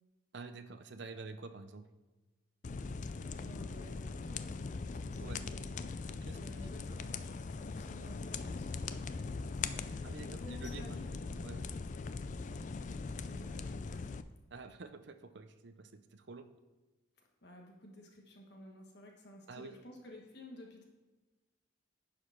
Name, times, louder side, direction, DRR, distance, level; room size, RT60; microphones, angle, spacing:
voice 1, 0.3-1.9 5.2-5.4 6.2-6.4 10.0-11.0 11.4-11.7 14.5-16.5 19.5-19.7, right 4 dB, 55° right, 8 dB, 0.6 m, -48 dB
sound 1, 2.6-14.2, left 4 dB, 35° left, 0.3 m, -41 dB
voice 2, 3.2-8.8 9.5-11.5 12.4-12.6 13.2-14.1 17.2-20.8, left 1 dB, 55° left, 1 dB, 1.4 m, -53 dB
10.5 x 5.0 x 5.8 m, 1.2 s
head